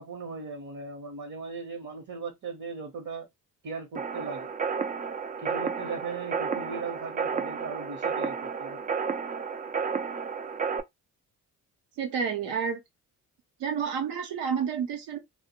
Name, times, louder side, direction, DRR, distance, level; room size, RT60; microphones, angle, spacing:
voice 1, 0.0-3.3 3.6-4.5 5.4-8.9, right 4 dB, 45° right, 0.9 m, -38 dB
sound 1, 4.0-10.8, right 6 dB, 20° right, 0.3 m, -32 dB
voice 2, 12.0-12.8 13.6-15.2, right 7 dB, 80° right, 0.9 m, -30 dB
2.1 x 2.0 x 2.9 m
supercardioid pair, 50°, 41 cm